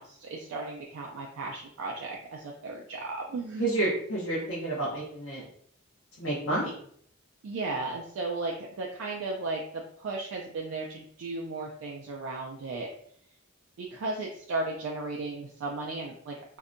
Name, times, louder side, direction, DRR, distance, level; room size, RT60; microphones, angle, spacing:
voice 1, 0.0-3.7 7.4-12.9 13.8-16.6, right 3 dB, 80° right, -1 dB, 0.4 m, -35 dB
voice 2, 3.6-5.4 6.2-6.7, right 2 dB, 65° left, -6 dB, 0.7 m, -29 dB
2.6 x 2.1 x 2.5 m, 0.64 s
head